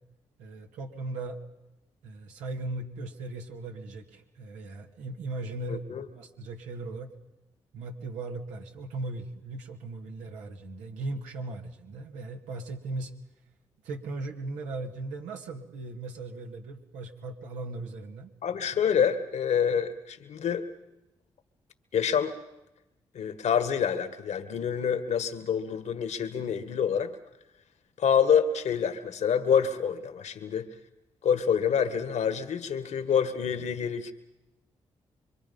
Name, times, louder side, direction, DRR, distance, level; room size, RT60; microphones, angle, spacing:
voice 1, 0.4-1.4 2.0-7.1 7.7-13.1 13.8-18.3, right 2 dB, 90° right, 2 dB, 2.3 m, -38 dB
voice 2, 5.7-6.0 18.4-20.7 21.9-22.3 23.1-27.1 28.0-30.7 31.2-34.1, left 7 dB, 70° left, 10 dB, 1.8 m, -27 dB
25.5 x 24.5 x 5.6 m, 0.96 s
supercardioid pair, 45°, 12 cm